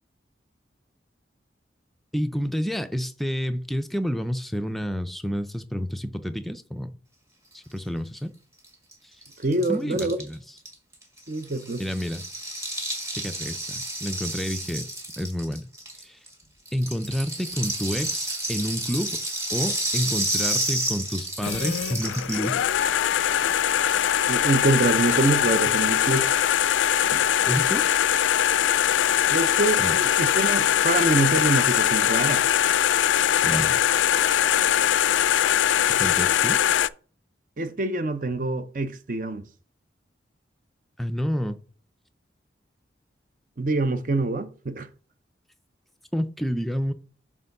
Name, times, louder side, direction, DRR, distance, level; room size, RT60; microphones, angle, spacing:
voice 1, 2.1-7.0 7.5-8.3 9.0-9.2 9.7-10.4 11.8-12.2 13.2-14.9 15.2-15.7 16.0-16.2 16.7-19.2 19.5-22.6 27.5-27.8 29.8-30.0 33.4-33.8 36.0-36.6 41.0-41.6 46.1-46.9, equal, ahead, 0.4 m, -29 dB
Rattle (instrument), 8.6-8.7 8.9-9.0 9.2-16.3 16.7-22.5, right 1 dB, 15° right, 1.7 m, -30 dB
voice 2, 9.4-10.2 11.3-11.8 24.3-26.3 27.1-27.2 29.3-32.4 37.6-39.5 43.6-44.9, right 2 dB, 45° right, 0.6 m, -25 dB
sound 1, 21.4-36.9, left 10 dB, 85° left, 0.3 m, -22 dB
6.7 x 3.6 x 5.3 m
head